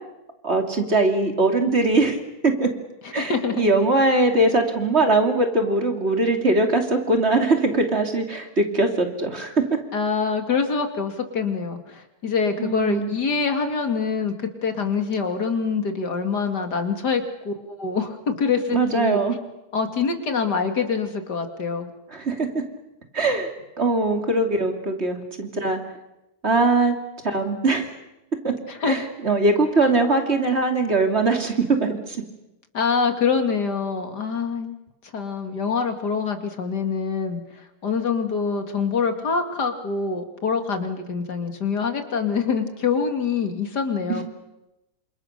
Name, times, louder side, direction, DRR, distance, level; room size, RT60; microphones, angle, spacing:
voice 1, 0.4-2.7 3.1-9.8 12.6-13.1 18.7-19.4 22.1-22.6 23.1-23.5 23.8-25.8 26.4-27.0 27.2-27.9 28.4-28.5 28.8-32.2 44.1-44.2, right 2 dB, 40° right, 4 dB, 3.2 m, -21 dB
voice 2, 3.2-3.7 9.9-19.2 19.7-21.9 28.7-29.0 32.7-34.7 35.1-44.2, left 5 dB, 85° left, 6 dB, 2.9 m, -25 dB
28.5 x 27.0 x 6.7 m, 0.95 s
omnidirectional pair, 1.7 m